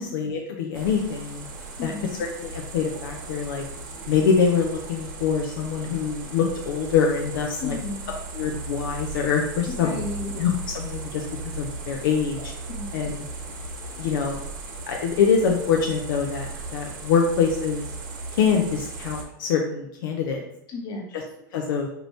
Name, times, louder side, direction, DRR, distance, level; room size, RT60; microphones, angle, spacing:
voice 1, 0.0-1.5 1.8-1.9 2.2-3.6 4.1-7.8 8.3-10.0 10.3-12.5 12.9-13.2 14.0-14.4 14.9-16.5 16.7-17.9 18.4-20.4 21.1-21.2 21.5-21.9, left 6 dB, 75° left, 1 dB, 0.6 m, -24 dB
sound 1, 0.7-19.2, right 3 dB, 85° right, 0.9 m, -37 dB
voice 2, 1.8-2.2 7.6-8.1 9.8-10.3 12.7-13.0 20.7-21.2, left 3 dB, 40° left, 1 dB, 1.1 m, -33 dB
4.7 x 2.6 x 3.2 m, 0.74 s
hypercardioid pair, 110°, 11 cm